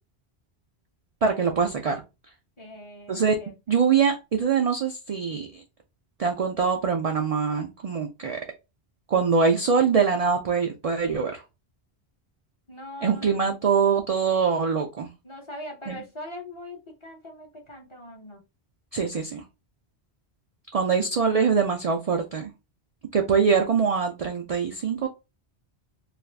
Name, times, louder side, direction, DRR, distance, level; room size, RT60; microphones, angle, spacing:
voice 1, 1.2-2.0 3.1-3.4 3.7-5.6 6.2-8.4 9.1-11.4 13.0-15.1 15.9-16.0 18.9-19.4 20.7-22.5 23.1-25.1, right 6 dB, 60° right, 0.4 m, -23 dB
voice 2, 2.6-3.8 12.7-13.6 15.2-18.4, left 1 dB, 30° left, 0.7 m, -41 dB
2.5 x 2.4 x 3.2 m
omnidirectional pair, 1.1 m